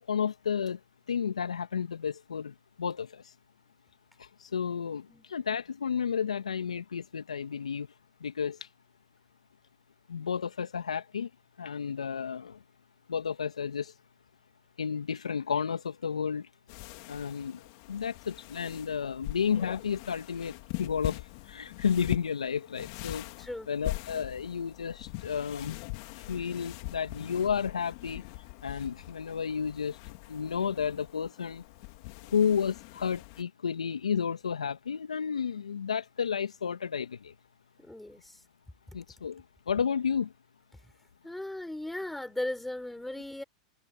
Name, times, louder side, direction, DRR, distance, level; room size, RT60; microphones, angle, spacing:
voice 1, 0.1-0.8 1.1-3.2 4.5-7.9 8.2-8.6 10.1-11.3 11.6-12.6 13.1-13.9 14.8-16.5 17.1-17.6 17.9-23.3 23.7-25.8 26.3-28.2 28.6-30.0 30.3-31.6 32.3-37.3 38.9-40.3, left 7 dB, 85° left, 2.3 m, -32 dB
sound 1, 16.7-33.4, left 27 dB, 55° left, 2.9 m, -42 dB
voice 2, 23.4-23.7 37.8-38.4 41.2-43.4, left 1 dB, 5° left, 5.1 m, -37 dB
hypercardioid pair, 105°, 3 cm